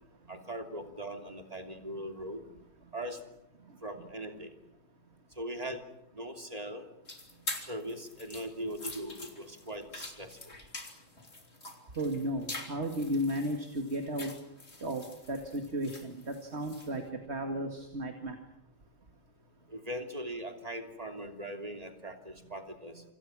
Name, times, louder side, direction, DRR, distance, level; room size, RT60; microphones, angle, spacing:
voice 1, 0.3-2.4 2.9-3.2 3.8-4.5 5.4-5.8 6.1-6.8 7.6-10.4 19.7-23.0, right 1 dB, 35° right, 4 dB, 3.1 m, -40 dB
sound 1, 7.1-17.0, left 2 dB, 80° left, 3.8 m, -45 dB
voice 2, 12.0-14.3 14.8-18.4, right 1 dB, 75° right, 4 dB, 2.5 m, -34 dB
28.5 x 26.5 x 6.2 m, 0.79 s
omnidirectional pair, 1.1 m